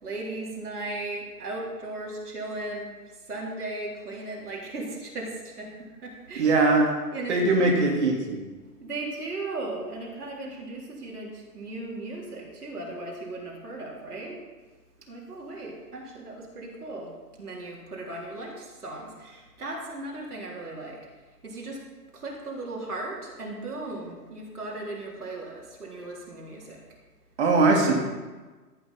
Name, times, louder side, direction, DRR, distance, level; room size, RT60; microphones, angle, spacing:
voice 1, 0.0-6.6 7.1-7.8 8.8-14.4 15.1-21.0 21.4-21.8 22.1-26.8, right 2 dB, 70° right, -4 dB, 3.8 m, -37 dB
voice 2, 6.4-6.9 7.3-8.4 27.4-27.9, right 3 dB, 45° right, 0 dB, 2.9 m, -21 dB
14.5 x 9.5 x 5.7 m, 1.3 s
figure-of-eight pair, 130°, 48 cm